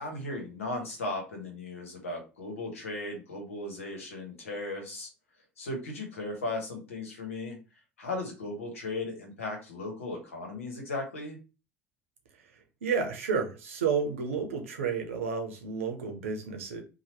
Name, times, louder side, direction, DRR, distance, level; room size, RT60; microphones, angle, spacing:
voice 1, 0.0-5.1 5.6-7.6 8.0-11.4, left 2 dB, 85° left, 1.1 m, -36 dB
voice 2, 12.8-16.8, right 6 dB, 80° right, 0.7 m, -31 dB
3.0 x 2.3 x 4.2 m
hypercardioid pair, 65°, 7 cm